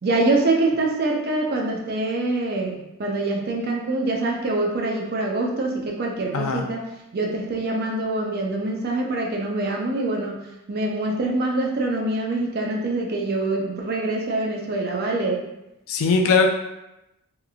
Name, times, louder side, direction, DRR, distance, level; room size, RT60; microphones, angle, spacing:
voice 1, 0.0-6.9 7.1-10.4 10.7-15.4, right 2 dB, 45° right, 0 dB, 0.4 m, -25 dB
voice 2, 6.3-6.7 15.9-16.5, left 4 dB, 70° left, 4 dB, 0.3 m, -19 dB
2.9 x 2.5 x 2.3 m, 0.91 s
head